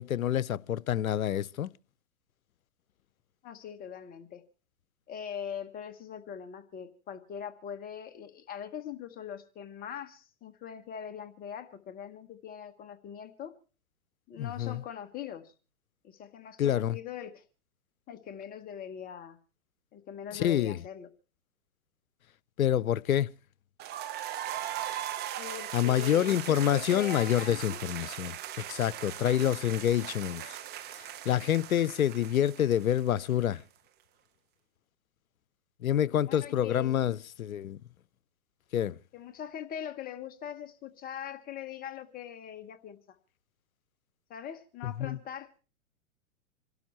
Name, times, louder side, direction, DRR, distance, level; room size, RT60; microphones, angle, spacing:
voice 1, 0.0-1.7 14.4-14.8 16.6-17.0 20.3-20.8 22.6-23.3 25.7-30.6 31.0-33.6 35.8-37.8 38.7-39.0 44.8-45.2, left 10 dB, 85° left, 0.6 m, -27 dB
voice 2, 3.4-4.4 5.1-13.5 14.3-15.5 16.0-17.4 18.1-19.4 19.9-21.1 25.4-27.8 36.3-37.1 39.1-43.2 44.3-45.6, left 9 dB, 20° left, 1.0 m, -42 dB
sound 1, 23.8-33.6, right 12 dB, 25° right, 1.0 m, -39 dB
27.5 x 12.0 x 3.0 m
hypercardioid pair, 125°, 41 cm